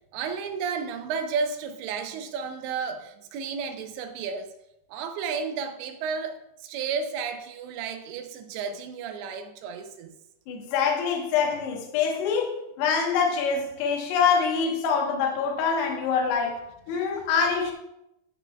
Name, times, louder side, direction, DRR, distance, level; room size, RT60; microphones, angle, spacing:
voice 1, 0.1-4.5 4.9-10.1, right 5 dB, 85° right, 3.0 m, -32 dB
voice 2, 10.5-16.6 16.9-17.7, left 6 dB, 75° left, 3.2 m, -25 dB
17.0 x 6.0 x 2.3 m
omnidirectional pair, 5.0 m